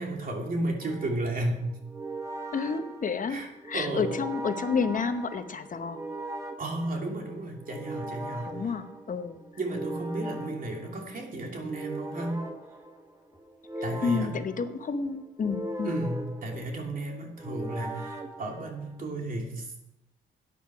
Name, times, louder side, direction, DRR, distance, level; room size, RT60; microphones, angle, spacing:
voice 1, 0.0-1.7 3.3-3.5 3.7-4.1 6.6-8.6 9.6-12.4 13.8-14.3 15.8-19.8, right 1 dB, 45° right, 1 dB, 2.7 m, -33 dB
sound 1, 0.8-19.2, right 2 dB, 15° right, 1.3 m, -40 dB
voice 2, 2.5-3.4 3.7-6.0 8.4-9.4 14.0-15.9, left 5 dB, 40° left, 10 dB, 1.0 m, -30 dB
12.0 x 9.4 x 4.8 m, 0.90 s
cardioid pair, 90°, 20 cm